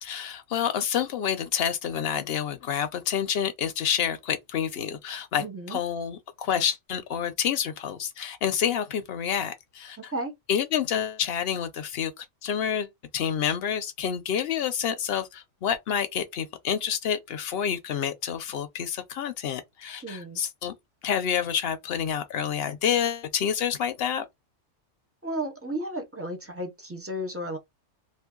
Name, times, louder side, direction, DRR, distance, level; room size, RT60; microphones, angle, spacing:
voice 1, 0.0-10.1 10.5-20.7 21.0-24.3, left 8 dB, 60° left, 0.7 m, -28 dB
voice 2, 5.4-5.8 10.1-10.3 20.0-20.4 25.2-27.6, right 1 dB, 20° right, 0.4 m, -33 dB
2.6 x 2.5 x 3.7 m
omnidirectional pair, 1.3 m